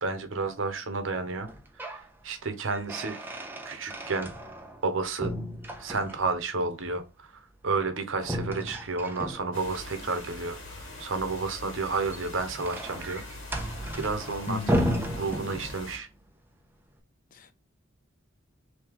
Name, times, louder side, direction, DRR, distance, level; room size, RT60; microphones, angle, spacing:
voice 1, 0.0-1.5 1.8-3.4 3.6-4.3 4.8-5.3 5.8-10.6 11.0-13.2 13.9-14.6 15.2-16.1, right 4 dB, 80° right, 0.8 m, -31 dB
sound 1, 1.4-2.1 2.4-4.9 5.2-6.4 8.2-9.8 11.8-16.0, equal, 10° right, 0.4 m, -34 dB
sound 2, 9.5-16.0, left 1 dB, 90° left, 1.3 m, -43 dB
voice 2, 14.5-14.9 17.3-17.5, left 3 dB, 45° left, 0.5 m, -34 dB
3.0 x 2.8 x 3.5 m
head